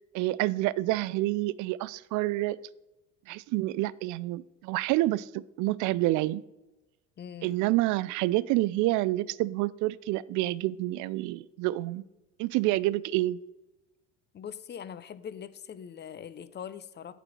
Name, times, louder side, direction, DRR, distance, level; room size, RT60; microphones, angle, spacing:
voice 1, 0.0-2.6 3.3-6.4 7.4-12.0 12.4-13.4, right 17 dB, 60° right, 20 dB, 0.4 m, -28 dB
voice 2, 7.2-7.6 14.3-17.1, left 8 dB, 30° left, 14 dB, 0.6 m, -42 dB
9.0 x 4.2 x 6.2 m, 1.0 s
hypercardioid pair, 75°, 34 cm